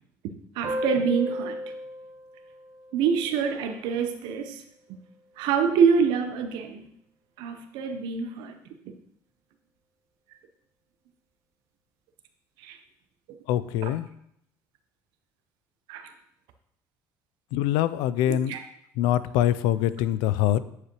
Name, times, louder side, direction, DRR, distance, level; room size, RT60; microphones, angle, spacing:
sound 1, 0.6-3.8, equal, 40° right, 0.9 m, -34 dB
voice 1, 0.6-1.6 2.9-4.6 5.4-6.9 7.4-8.6 8.9-9.0 12.6-12.8 13.8-13.9 15.9-16.1 18.3-18.6, right 6 dB, 75° right, 7 dB, 0.7 m, -26 dB
voice 2, 13.5-14.1 17.5-18.6 19.0-20.7, left 12 dB, 80° left, 15 dB, 0.4 m, -24 dB
9.6 x 4.9 x 3.0 m, 0.71 s
supercardioid pair, 105°, 8 cm